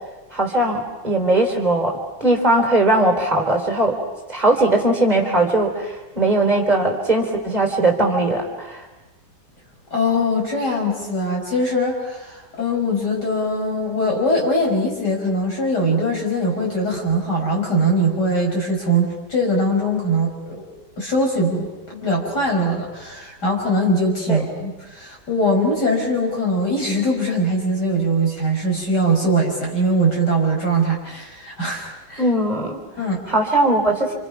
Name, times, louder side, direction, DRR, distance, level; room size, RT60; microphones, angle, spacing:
voice 1, 0.3-4.0 4.3-8.8 24.3-24.4 32.2-32.8 33.3-34.1, right 2 dB, 25° right, 1 dB, 3.7 m, -19 dB
voice 2, 9.9-20.7 21.0-32.2 33.0-33.2, equal, 75° left, -1 dB, 6.4 m, -21 dB
30.0 x 27.5 x 5.9 m, 1.1 s
omnidirectional pair, 1.8 m